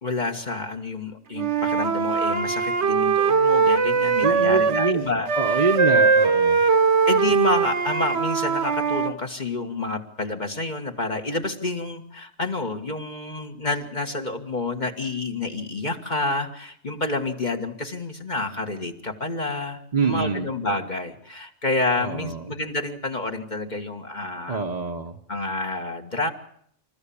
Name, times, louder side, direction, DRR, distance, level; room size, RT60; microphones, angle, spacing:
voice 1, 0.0-5.8 7.1-24.7 25.3-26.3, left 2 dB, 40° left, 4 dB, 1.8 m, -29 dB
Wind instrument woodwind instrument, 1.3-5.0 5.3-9.1, right 5 dB, 70° right, 1.4 m, -21 dB
voice 2, 4.2-5.0 5.3-6.6 19.9-20.5 22.0-22.4 24.5-25.1, right 4 dB, 35° right, 2 dB, 1.0 m, -25 dB
27.0 x 14.0 x 8.6 m, 0.68 s
omnidirectional pair, 1.2 m